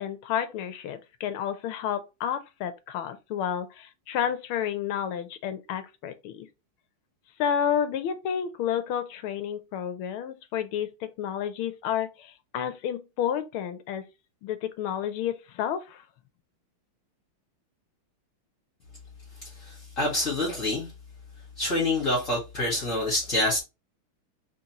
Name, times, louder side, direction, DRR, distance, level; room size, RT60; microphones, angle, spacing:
voice 1, 0.0-6.5 7.4-14.1 14.4-16.0, left 9 dB, 80° left, 1.5 m, -30 dB
voice 2, 19.6-20.9 21.6-23.6, left 1 dB, 40° left, 2.0 m, -26 dB
4.1 x 3.9 x 2.9 m
omnidirectional pair, 2.4 m